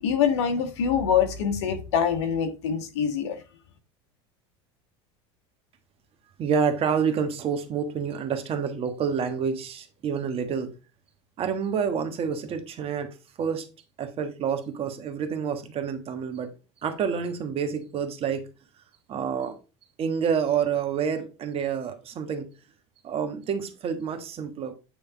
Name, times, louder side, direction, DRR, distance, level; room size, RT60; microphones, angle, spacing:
voice 1, 0.0-3.4, left 7 dB, 80° left, 1.5 m, -24 dB
voice 2, 6.4-10.7 11.4-13.7 14.0-16.5 16.8-18.5 19.1-19.6 20.0-22.5 23.0-24.7, right 7 dB, 40° right, 1.4 m, -28 dB
9.0 x 3.5 x 4.7 m
supercardioid pair, 100°, 15 cm